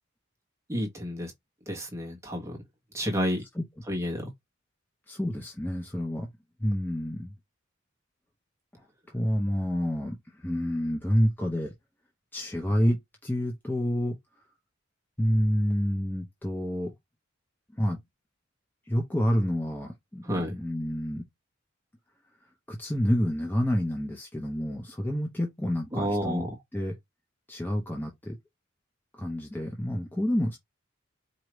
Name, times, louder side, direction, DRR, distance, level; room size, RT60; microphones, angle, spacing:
voice 1, 0.7-1.3 1.7-2.6 2.9-3.4 3.9-4.3 20.2-20.5 25.9-26.6, equal, 15° right, 1.2 m, -30 dB
voice 2, 5.1-6.3 6.6-7.3 9.1-11.7 12.3-14.2 15.2-16.9 17.7-18.0 18.9-20.2 20.5-21.2 22.7-26.5 26.7-26.9 27.5-28.4 29.1-30.6, equal, 10° left, 0.7 m, -28 dB
4.8 x 2.7 x 3.1 m
head